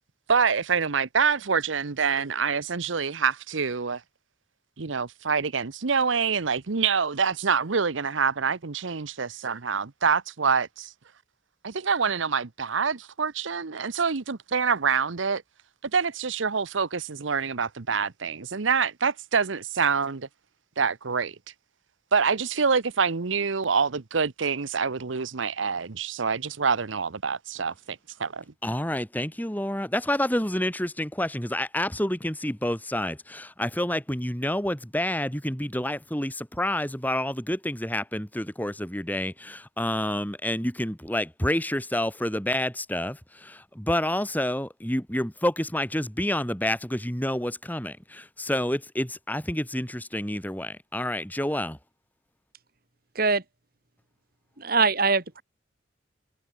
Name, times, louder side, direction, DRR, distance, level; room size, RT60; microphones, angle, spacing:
voice 1, 0.3-4.0 4.8-10.9 11.6-15.4 15.9-20.3 20.8-21.3 22.1-28.4, right 5 dB, 80° right, 0.9 m, -26 dB
voice 2, 28.6-51.8, left 1 dB, 10° left, 2.7 m, -28 dB
voice 3, 54.6-55.4, right 4 dB, 50° right, 2.1 m, -22 dB
head